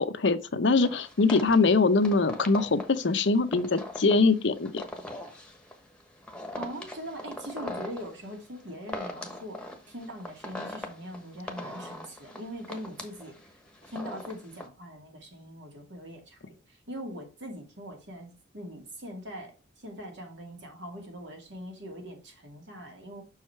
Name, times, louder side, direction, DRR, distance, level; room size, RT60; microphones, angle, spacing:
voice 1, 0.0-4.8, left 3 dB, 80° left, 0.7 m, -23 dB
sound 1, 0.8-14.7, left 1 dB, 5° left, 1.1 m, -41 dB
voice 2, 6.6-13.4 13.9-19.5 19.8-23.2, equal, 75° right, 2.5 m, -42 dB
6.4 x 4.8 x 4.5 m
head